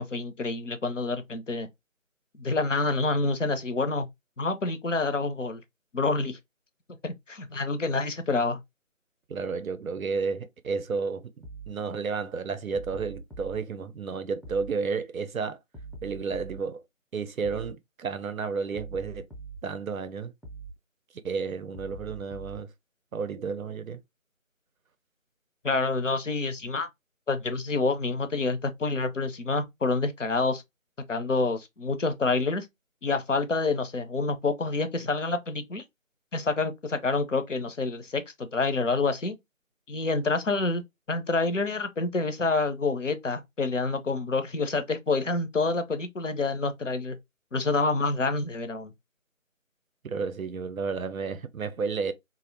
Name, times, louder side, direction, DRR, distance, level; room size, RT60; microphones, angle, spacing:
voice 1, 0.0-1.7 2.4-4.1 4.4-5.6 5.9-6.4 7.0-8.6 25.6-26.9 27.3-30.6 31.1-32.7 33.0-35.8 36.3-39.4 39.9-40.8 41.1-47.2 47.5-48.9, left 3 dB, 65° left, 0.5 m, -27 dB
voice 2, 9.3-11.3 11.7-15.6 16.0-16.8 17.1-19.3 19.6-20.3 21.2-22.7 23.1-24.0 50.0-52.1, right 5 dB, 90° right, 0.6 m, -32 dB
sound 1, 11.4-11.8 12.7-13.6 14.4-14.8 15.7-16.6 17.4-17.8 18.7-19.6 20.4-20.8 21.7-22.6, right 4 dB, ahead, 0.4 m, -42 dB
2.4 x 2.0 x 2.5 m
figure-of-eight pair, 180°, 41 cm